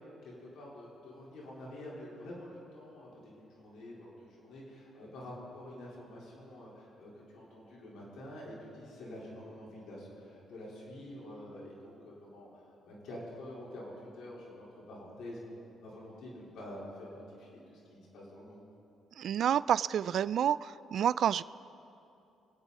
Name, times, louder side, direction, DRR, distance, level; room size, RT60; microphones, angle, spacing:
voice 1, 0.0-18.6, left 1 dB, 80° left, -6 dB, 4.2 m, -47 dB
voice 2, 19.2-21.4, right 9 dB, 65° right, 18 dB, 0.3 m, -29 dB
26.0 x 8.9 x 4.2 m, 2.8 s
cardioid pair, 90°, 0 cm